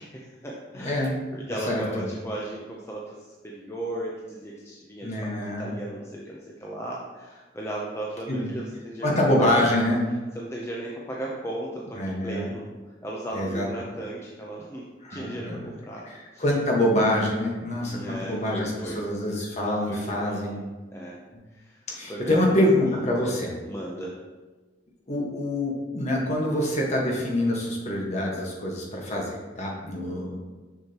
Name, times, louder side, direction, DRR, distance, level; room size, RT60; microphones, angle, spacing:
voice 1, 0.0-9.6 10.3-16.0 16.3-16.4 17.8-19.0 19.9-20.6 20.9-21.2 21.5-22.6 22.9-23.0 23.7-24.2, right 1 dB, 15° left, -4 dB, 0.6 m, -36 dB
voice 2, 0.8-1.1 1.7-2.0 5.0-5.7 8.3-8.5 9.0-10.0 11.9-12.4 13.3-13.7 15.0-15.7 16.1-20.6 21.9-23.5 25.1-30.4, left 1 dB, 40° left, -2 dB, 1.4 m, -25 dB
6.5 x 6.3 x 2.9 m, 1.3 s
head